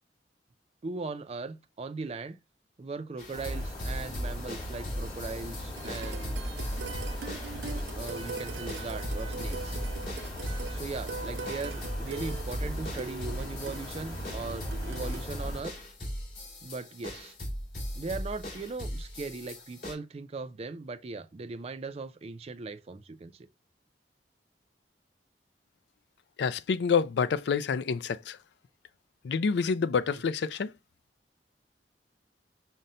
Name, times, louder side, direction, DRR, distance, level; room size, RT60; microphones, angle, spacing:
voice 1, 0.8-2.4 2.8-6.4 7.9-9.8 10.7-15.8 16.6-17.3 18.0-23.5, right 3 dB, 35° right, 0.4 m, -39 dB
sound 1, 3.2-19.9, equal, 55° left, 2.1 m, -39 dB
sound 2, 3.3-15.6, equal, 25° left, 1.4 m, -39 dB
sound 3, 5.7-15.2, right 4 dB, 90° right, 0.6 m, -42 dB
voice 2, 26.4-28.4 29.2-30.7, left 5 dB, 75° left, 0.4 m, -27 dB
5.4 x 2.1 x 3.8 m
head